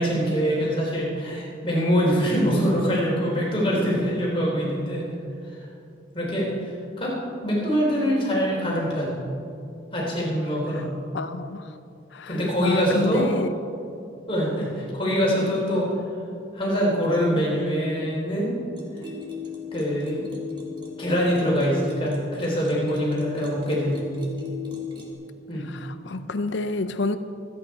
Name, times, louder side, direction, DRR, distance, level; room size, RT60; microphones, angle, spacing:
voice 1, 0.0-5.1 6.1-6.5 7.0-7.1 7.4-9.2 9.9-10.9 12.3-13.3 14.3-15.9 16.5-18.6 19.7-20.2 21.0-24.0 25.5-25.7, equal, 30° left, -5 dB, 3.9 m, -24 dB
voice 2, 11.1-11.8 12.1-13.5 25.6-27.2, left 3 dB, 75° left, 10 dB, 0.6 m, -29 dB
sound 1, 18.7-25.1, left 5 dB, 25° right, 2.0 m, -37 dB
25.0 x 9.1 x 4.6 m, 2.6 s
head